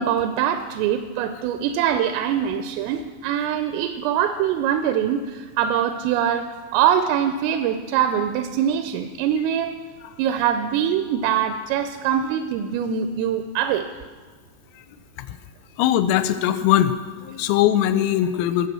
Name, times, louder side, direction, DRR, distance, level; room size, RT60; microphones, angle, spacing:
voice 1, 0.0-9.8 10.2-13.9, right 9 dB, 85° right, 8 dB, 3.1 m, -23 dB
voice 2, 15.8-16.9 17.2-18.7, left 11 dB, 85° left, 10 dB, 3.3 m, -20 dB
18.0 x 6.5 x 7.5 m, 1.4 s
omnidirectional pair, 5.9 m